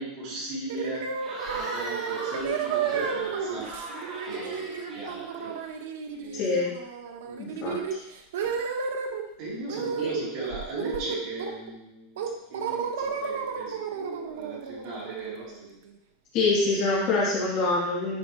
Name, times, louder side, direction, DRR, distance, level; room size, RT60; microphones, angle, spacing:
voice 1, 0.0-3.8 4.2-5.6 6.1-6.6 7.2-7.5 8.4-8.6 9.4-15.7, right 2 dB, 40° right, -6 dB, 2.8 m, -37 dB
sound 1, 0.7-9.2 9.7-10.1 10.4-11.7 12.2-15.9, right 6 dB, 80° right, 0.9 m, -33 dB
Cheering / Crowd, 1.2-5.8, right 1 dB, 20° right, 1.9 m, -39 dB
voice 2, 6.3-6.7 7.4-7.8 10.0-10.1 16.3-18.2, left 3 dB, 35° left, -7 dB, 2.8 m, -25 dB
10.0 x 5.4 x 3.1 m, 0.86 s
supercardioid pair, 180°, 0 cm